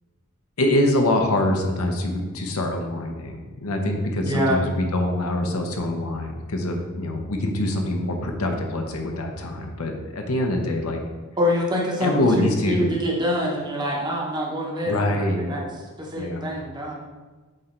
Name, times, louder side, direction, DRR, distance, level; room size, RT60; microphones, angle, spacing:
voice 1, 0.6-11.0 12.0-12.9 14.8-15.6 16.2-16.5, left 1 dB, 70° left, 3 dB, 0.9 m, -24 dB
voice 2, 4.2-4.6 11.4-15.6 16.0-16.9, left 1 dB, 20° right, -3 dB, 1.2 m, -25 dB
7.7 x 3.3 x 4.4 m, 1.3 s
head